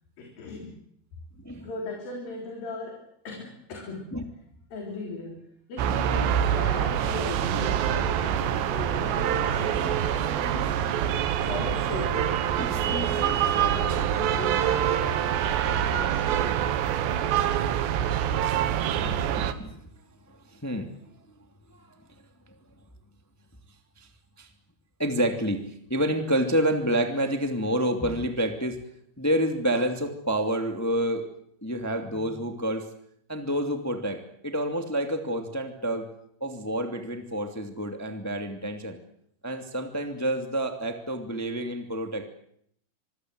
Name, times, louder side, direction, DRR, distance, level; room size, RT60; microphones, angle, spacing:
voice 1, 0.2-0.8 1.6-4.2 4.7-10.8 11.3-12.4 12.9-16.7, left 3 dB, 50° left, 1 dB, 5.2 m, -38 dB
sound 1, 5.8-19.5, right 10 dB, 70° right, 3.3 m, -25 dB
voice 2, 12.6-12.9 19.0-19.8 20.3-20.9 21.7-21.9 24.0-24.1 24.4-24.5 25.0-28.8 29.2-31.3 31.6-32.8 33.3-36.1 36.4-39.0 39.4-42.2, right 1 dB, 25° left, 5 dB, 0.3 m, -28 dB
25.5 x 23.0 x 8.0 m, 0.70 s
omnidirectional pair, 5.6 m